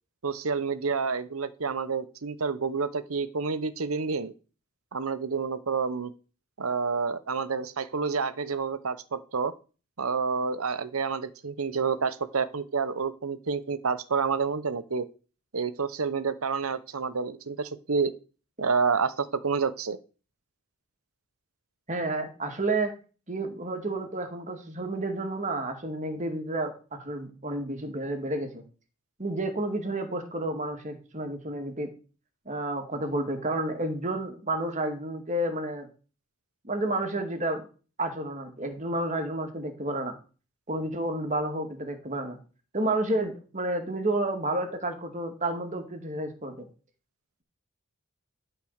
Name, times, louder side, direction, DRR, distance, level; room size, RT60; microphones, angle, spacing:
voice 1, 0.2-4.3 4.9-6.1 6.6-9.5 10.0-15.1 15.5-18.1 18.6-20.0, right 5 dB, 85° right, 15 dB, 0.9 m, -29 dB
voice 2, 21.9-22.9 23.3-28.6 29.2-31.9 32.5-35.9 36.6-37.7 38.0-40.2 40.7-42.4 42.7-46.7, right 2 dB, 35° right, 5 dB, 2.0 m, -30 dB
12.0 x 4.5 x 6.5 m, 0.35 s
head